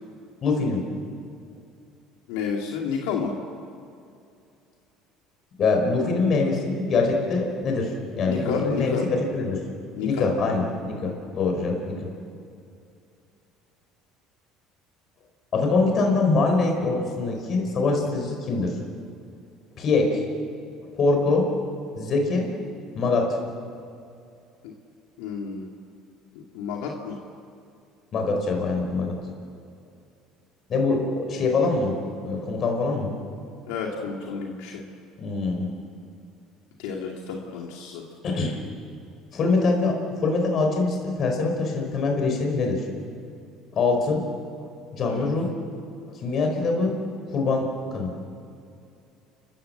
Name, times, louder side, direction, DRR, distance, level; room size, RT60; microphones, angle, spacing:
voice 1, 0.4-0.8 5.6-9.0 9.3-9.6 10.0-12.0 15.5-18.7 19.8-20.1 20.9-21.5 21.9-22.5 22.9-23.4 28.1-29.1 30.7-32.0 32.2-33.1 35.2-35.7 38.2-38.6 39.3-42.8 43.7-44.2 44.6-45.5 46.1-47.0 47.3-48.1, left 3 dB, 45° left, 2 dB, 5.1 m, -24 dB
voice 2, 2.3-3.3 8.3-9.0 10.0-10.3 25.2-25.7 26.5-27.2 33.7-34.8 36.8-38.0 45.1-45.3, left 5 dB, 85° left, 0 dB, 2.3 m, -30 dB
30.0 x 15.0 x 7.8 m, 2.5 s
supercardioid pair, 105°, 0 cm